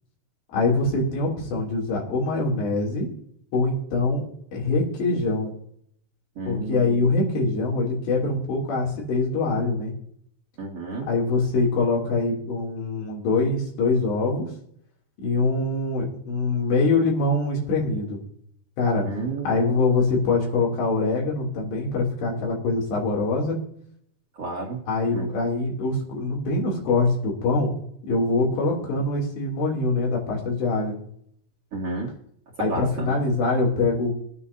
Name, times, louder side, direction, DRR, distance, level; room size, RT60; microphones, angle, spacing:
voice 1, 0.5-3.1 3.5-4.2 4.5-5.5 6.5-9.9 11.1-14.5 15.2-18.2 18.8-19.1 19.4-23.6 24.9-27.7 28.1-31.0 32.6-34.2, left 3 dB, 80° left, -2 dB, 5.1 m, -24 dB
voice 2, 6.4-7.1 10.6-11.1 19.0-19.5 19.8-19.9 24.4-24.9 25.1-25.3 31.7-32.1 32.6-33.2, right 3 dB, 45° right, -4 dB, 2.3 m, -31 dB
21.5 x 9.5 x 2.7 m, 0.68 s
omnidirectional pair, 4.9 m